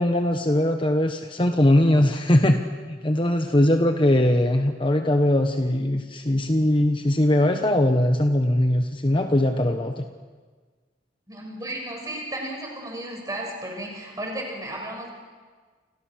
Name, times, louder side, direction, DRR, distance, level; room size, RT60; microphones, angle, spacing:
voice 1, 0.0-2.6 2.9-10.1, left 1 dB, 25° left, 5 dB, 1.1 m, -21 dB
voice 2, 11.3-15.1, right 1 dB, 20° right, 0 dB, 7.0 m, -34 dB
30.0 x 26.0 x 6.4 m, 1.5 s
head